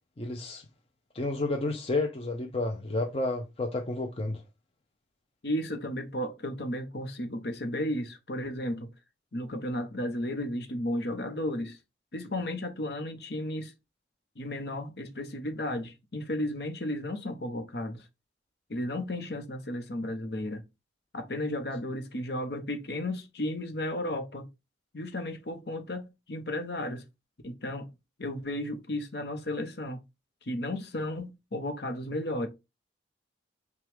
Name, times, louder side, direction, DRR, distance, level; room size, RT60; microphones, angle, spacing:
voice 1, 0.2-0.6 1.1-4.4, left 2 dB, 30° left, 0.5 m, -31 dB
voice 2, 5.4-8.9 9.3-11.8 12.1-13.7 14.4-18.1 18.7-20.6 21.1-24.5 24.9-27.0 27.4-27.9 28.2-30.0 30.5-32.5, left 1 dB, 60° left, 0.9 m, -34 dB
6.0 x 2.3 x 3.5 m
head